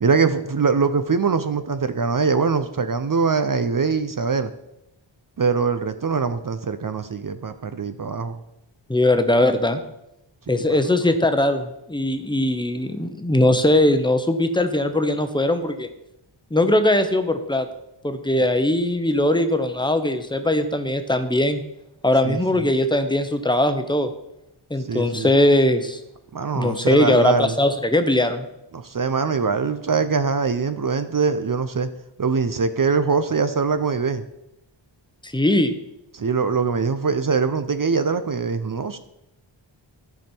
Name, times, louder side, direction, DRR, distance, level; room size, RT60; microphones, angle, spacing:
voice 1, 0.0-4.5 5.4-8.4 10.5-10.8 18.3-18.4 22.2-22.4 24.9-25.3 26.3-27.5 28.7-31.9 32.2-34.2 36.1-39.0, right 5 dB, 45° right, 10 dB, 0.6 m, -23 dB
voice 2, 8.9-9.8 10.5-15.9 16.5-17.7 18.0-21.6 22.0-24.1 24.7-26.0 26.5-28.5 35.2-35.7, left 1 dB, 10° left, 8 dB, 0.9 m, -20 dB
14.0 x 5.2 x 4.4 m, 0.86 s
wide cardioid pair, 75°, 46 cm